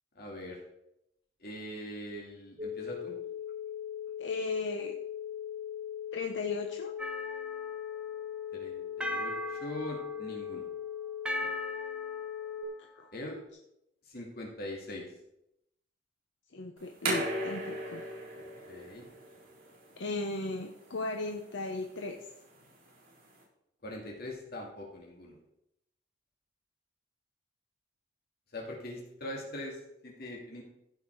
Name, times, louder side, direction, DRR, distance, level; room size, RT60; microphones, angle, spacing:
voice 1, 0.2-0.6 1.4-3.1 8.5-10.6 11.4-11.5 13.1-13.4 14.1-15.1 18.7-19.1 23.8-25.4 28.5-30.6, left 1 dB, 60° left, -1 dB, 2.2 m, -42 dB
sound 1, 2.6-12.6, left 9 dB, 35° right, 1.6 m, -39 dB
voice 2, 4.2-4.9 6.1-6.9 12.8-13.1 16.5-18.0 20.0-22.3, left 3 dB, 80° left, 3 dB, 0.9 m, -36 dB
sound 2, 7.0-8.3 9.0-10.5 11.3-12.8, equal, 5° right, 0.7 m, -39 dB
sound 3, 16.8-23.4, right 1 dB, 55° right, 4.3 m, -39 dB
15.0 x 5.9 x 4.6 m, 0.82 s
head